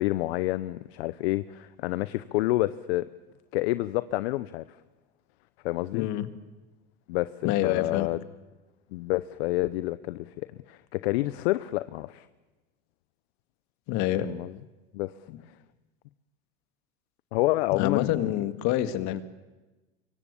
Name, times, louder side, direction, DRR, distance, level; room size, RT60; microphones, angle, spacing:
voice 1, 0.0-3.1 3.5-4.7 5.6-6.1 7.1-7.3 7.6-8.2 8.9-10.3 10.7-12.3 14.2-14.6 14.9-15.1 17.3-18.3 19.1-19.2, left 18 dB, 80° left, 15 dB, 0.8 m, -28 dB
voice 2, 5.9-6.3 7.4-8.1 13.9-14.2 15.3-15.4 17.7-19.2, left 13 dB, 60° left, 11 dB, 2.0 m, -27 dB
25.5 x 23.5 x 8.5 m, 1.2 s
supercardioid pair, 100°, 31 cm